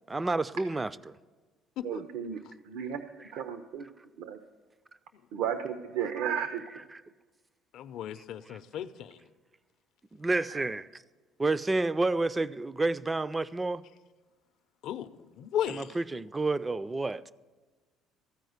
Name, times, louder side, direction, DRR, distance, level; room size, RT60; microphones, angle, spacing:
voice 1, 0.1-1.1 8.5-8.6 10.1-10.9 11.4-13.8 15.7-17.3, right 2 dB, 15° right, 0.3 m, -30 dB
voice 2, 1.8-2.4 2.7-3.1 3.3-3.9 4.2-4.4 5.3-6.6 10.5-10.7, right 8 dB, 75° right, 0.6 m, -33 dB
voice 3, 7.7-9.2 14.8-15.1 15.4-16.0, left 10 dB, 65° left, 0.5 m, -35 dB
14.5 x 4.9 x 7.9 m
cardioid pair, 130°, 0 cm